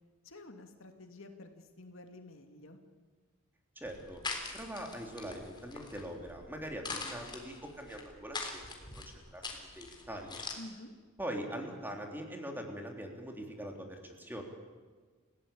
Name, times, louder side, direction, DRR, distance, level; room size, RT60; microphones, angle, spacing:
voice 1, 0.2-2.8 10.6-10.9, left 2 dB, 65° left, 5 dB, 2.6 m, -50 dB
sound 1, 3.8-10.5, left 3 dB, 20° left, 3.8 m, -44 dB
voice 2, 3.8-4.2 4.5-9.0 9.3-9.4 9.7-10.4 11.2-14.4, right 1 dB, 10° right, 2 dB, 3.5 m, -42 dB
30.0 x 17.0 x 8.6 m, 1.5 s
head